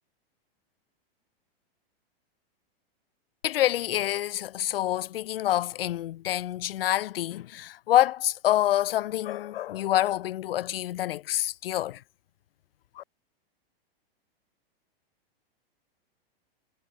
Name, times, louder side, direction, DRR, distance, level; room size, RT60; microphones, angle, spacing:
voice 1, 3.4-12.0 13.0-13.1, left 13 dB, 65° left, 6.3 m, -27 dB
supercardioid pair, 155°, 30 cm